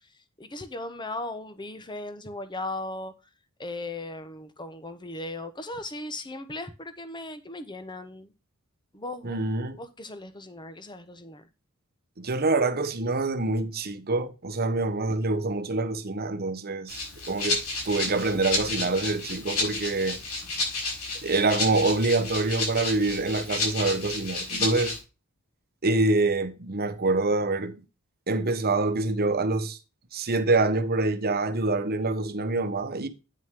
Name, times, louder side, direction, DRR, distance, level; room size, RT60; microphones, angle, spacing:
voice 1, 0.4-3.1 3.6-8.3 8.9-9.4 9.8-11.4 20.4-20.5, left 2 dB, 20° left, 1.1 m, -37 dB
voice 2, 9.2-9.8 12.2-17.0 17.3-20.2 21.2-24.9 25.8-27.8 28.3-29.8 30.1-33.1, right 3 dB, 45° right, 1.1 m, -26 dB
Rattle (instrument), 16.9-25.0, left 3 dB, 85° left, 5.7 m, -31 dB
9.5 x 6.2 x 3.7 m
head